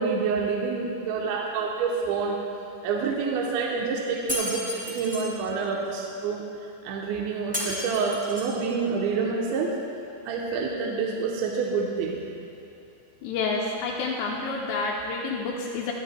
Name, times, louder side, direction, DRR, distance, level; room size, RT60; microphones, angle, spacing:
voice 1, 0.0-2.4 2.8-6.4 6.8-9.7 10.3-12.2, right 5 dB, 75° right, -2 dB, 2.9 m, -27 dB
Shatter, 4.3-5.3 7.5-8.6, left 1 dB, 5° right, 0.8 m, -32 dB
voice 2, 13.2-15.9, left 4 dB, 85° left, -1 dB, 2.5 m, -29 dB
21.5 x 13.5 x 2.2 m, 2.8 s
omnidirectional pair, 5.9 m